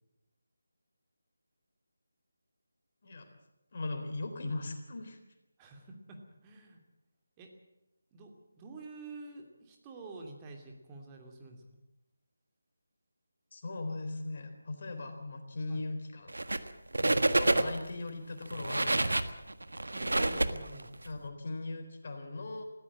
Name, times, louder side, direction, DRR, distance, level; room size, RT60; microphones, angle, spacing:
voice 1, 3.7-5.2 13.5-16.4 17.0-19.3 21.0-22.6, left 2 dB, 40° left, 5 dB, 3.8 m, -39 dB
voice 2, 5.6-6.2 6.4-6.8 7.4-7.5 8.1-11.8 15.7-15.8 19.9-20.9, right 3 dB, 15° right, 2 dB, 2.7 m, -48 dB
sound 1, 16.3-16.7 16.9-17.9 18.4-21.1, right 2 dB, 65° right, 1.5 m, -28 dB
20.5 x 16.0 x 8.8 m, 0.93 s
figure-of-eight pair, 155°, 0 cm